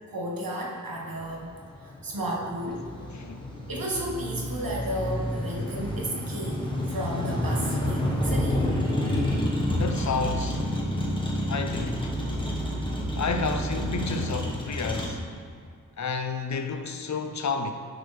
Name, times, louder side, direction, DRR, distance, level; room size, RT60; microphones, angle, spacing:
voice 1, 0.1-2.9 3.7-8.7, right 1 dB, 80° right, 1.3 m, -33 dB
Motor vehicle (road), 1.0-15.1, equal, 15° left, 1.2 m, -29 dB
voice 2, 3.1-3.4 9.7-10.6 11.5-12.1 13.2-15.2 16.0-17.7, left 4 dB, 55° left, 0.6 m, -30 dB
9.1 x 6.3 x 3.2 m
wide cardioid pair, 85°, 34 cm